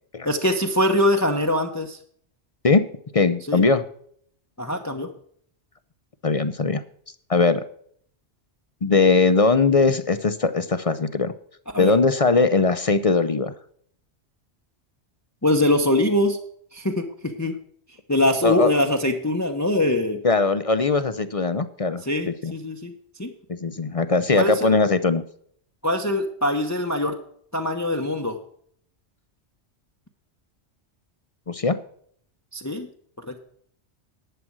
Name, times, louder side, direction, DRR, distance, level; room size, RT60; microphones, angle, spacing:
voice 1, 0.2-2.0 3.5-3.6 4.6-5.1 11.7-11.9 15.4-16.4 16.7-17.5 18.1-20.2 22.0-22.9 23.2-23.3 24.3-24.7 25.8-27.2 27.5-28.4 32.5-32.9 33.2-33.4, left 1 dB, 15° left, 4 dB, 0.9 m, -23 dB
voice 2, 3.1-3.8 6.2-6.8 7.3-7.6 8.8-11.3 11.8-13.5 18.4-18.7 20.2-22.5 23.5-25.2 31.5-31.8, left 4 dB, 40° left, 12 dB, 0.6 m, -20 dB
11.0 x 7.7 x 6.1 m, 0.63 s
omnidirectional pair, 1.2 m